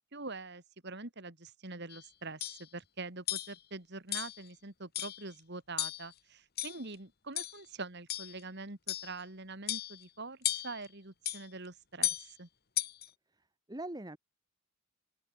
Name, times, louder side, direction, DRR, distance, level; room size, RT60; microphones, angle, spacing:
voice 1, 0.0-12.5, right 3 dB, 50° right, 2.7 m, -45 dB
sound 1, 1.9-2.0 2.4-2.6 3.3-3.6 4.1-4.4 4.9-5.3 5.8-6.1 6.6-6.9 7.4-7.6 8.1-8.4 8.9-9.2 9.7-10.0 10.4-10.8 11.2-11.4 12.0-12.3 12.8-13.1, left 14 dB, 45° left, 1.3 m, -35 dB
voice 2, 13.3-14.2, right 1 dB, 20° right, 1.2 m, -43 dB
open air
head